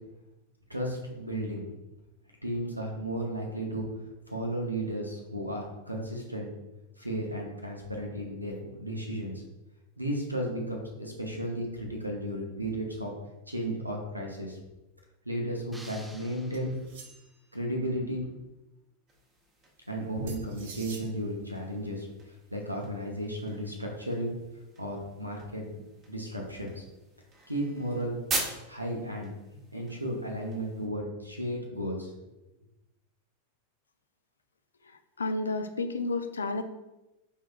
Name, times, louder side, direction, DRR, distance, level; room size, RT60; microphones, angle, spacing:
voice 1, 0.7-1.7 2.4-3.9 4.3-6.5 7.0-9.4 10.0-13.1 13.5-14.6 15.2-16.8 17.5-18.2 19.9-24.3 24.8-25.8 26.1-26.8 27.5-28.2 28.7-29.3 29.7-32.1, right 1 dB, 90° right, 0 dB, 0.7 m, -34 dB
sound 1, 15.7-17.3, right 1 dB, 5° right, 0.4 m, -51 dB
sound 2, 16.5-17.5 20.3-21.1, right 4 dB, 55° right, 0.7 m, -47 dB
sound 3, 19.1-30.9, right 2 dB, 25° right, 1.1 m, -43 dB
voice 2, 35.2-36.6, left 3 dB, 75° left, 8 dB, 0.4 m, -31 dB
5.3 x 3.4 x 2.4 m, 0.99 s
figure-of-eight pair, 90°, 0 cm